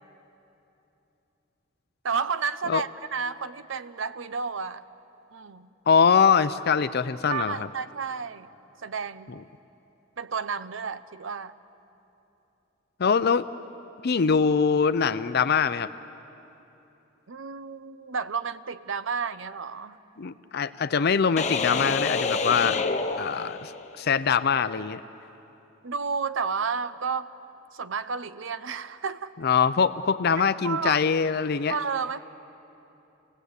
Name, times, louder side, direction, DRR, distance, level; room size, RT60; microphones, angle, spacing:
voice 1, 2.0-4.8 5.3-5.7 7.3-8.5 8.8-9.3 10.2-11.5 17.3-20.0 25.8-27.3 27.7-29.3 30.6-31.0 31.7-32.2, right 5 dB, 75° right, 13 dB, 0.7 m, -31 dB
voice 2, 5.9-7.7 13.0-13.5 14.0-15.9 20.2-22.8 23.2-25.0 29.4-31.7, left 6 dB, 55° left, 13 dB, 0.5 m, -23 dB
sound 1, 21.4-24.0, left 4 dB, 35° left, 1.0 m, -28 dB
29.5 x 19.0 x 8.2 m, 3.0 s
head